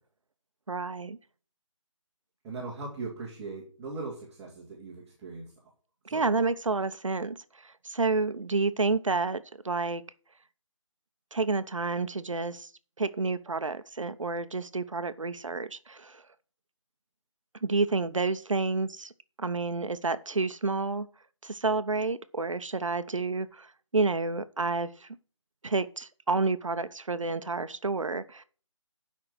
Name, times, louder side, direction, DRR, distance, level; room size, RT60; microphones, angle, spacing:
voice 1, 0.7-1.2 6.0-7.4 7.6-10.0 11.3-12.7 13.0-16.2 17.6-19.1 19.4-21.1 21.4-25.1 25.6-28.4, right 3 dB, 75° right, 1.0 m, -29 dB
voice 2, 2.4-5.4 6.1-6.5, right 3 dB, 15° right, 2.1 m, -39 dB
8.7 x 5.8 x 7.9 m
figure-of-eight pair, 160°, 17 cm